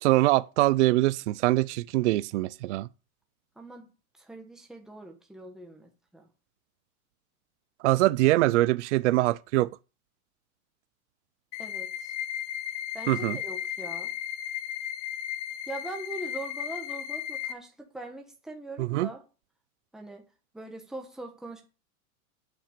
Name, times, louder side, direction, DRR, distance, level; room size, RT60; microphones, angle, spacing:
voice 1, 0.0-2.9 7.8-9.7 13.1-13.4 18.8-19.1, right 18 dB, 55° right, 0.5 m, -23 dB
voice 2, 3.6-3.9 4.2-6.3 11.6-12.1 12.9-14.1 15.7-19.2 19.9-20.2 20.5-21.6, right 2 dB, ahead, 1.2 m, -42 dB
sound 1, 11.5-17.5, left 10 dB, 25° left, 0.5 m, -35 dB
8.8 x 5.6 x 6.7 m
supercardioid pair, 160°, 43 cm